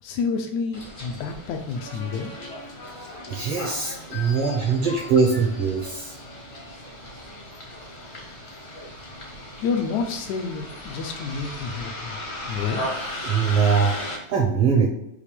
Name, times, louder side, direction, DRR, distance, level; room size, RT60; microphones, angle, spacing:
voice 1, 0.0-2.3 4.1-5.4 9.6-12.2 12.5-13.0, left 5 dB, 75° left, 3 dB, 1.8 m, -30 dB
Bus, 0.7-14.2, left 1 dB, 50° left, 0.7 m, -37 dB
voice 2, 3.0-6.2 13.2-14.9, right 5 dB, 70° right, -1 dB, 1.4 m, -22 dB
6.6 x 3.0 x 5.0 m, 0.83 s
omnidirectional pair, 3.6 m